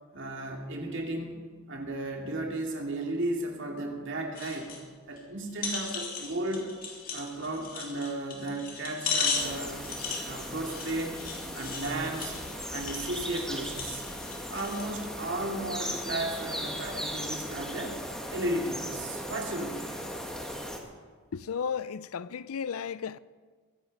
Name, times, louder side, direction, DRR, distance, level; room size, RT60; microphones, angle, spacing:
voice 1, 0.1-4.7 5.1-6.7 7.1-9.9 10.2-11.3 11.5-12.4 12.7-14.1 14.5-18.0 18.3-20.0, right 1 dB, 60° right, 2.5 m, -34 dB
sound 1, 4.4-4.8 5.2-5.3 5.6-14.9 15.5-15.6, left 5 dB, 40° left, 3.1 m, -36 dB
sound 2, 9.3-20.8, equal, 5° left, 1.6 m, -37 dB
voice 2, 21.3-23.2, left 6 dB, 80° left, 0.5 m, -34 dB
22.5 x 9.0 x 5.4 m
head